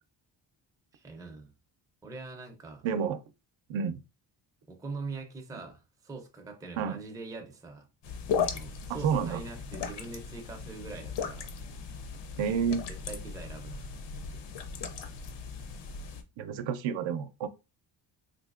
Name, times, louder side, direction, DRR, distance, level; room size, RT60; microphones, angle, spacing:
voice 1, 0.9-1.5 2.0-2.8 4.7-7.9 8.4-11.5 13.1-13.9, right 3 dB, 10° right, 0.4 m, -43 dB
voice 2, 2.8-3.2 3.7-4.0 6.8-7.0 9.0-9.4 12.4-12.8 16.4-17.5, right 7 dB, 80° right, 0.6 m, -29 dB
sound 1, 8.0-16.2, left 6 dB, 70° left, 0.6 m, -37 dB
3.9 x 2.8 x 2.3 m
wide cardioid pair, 180°, 45 cm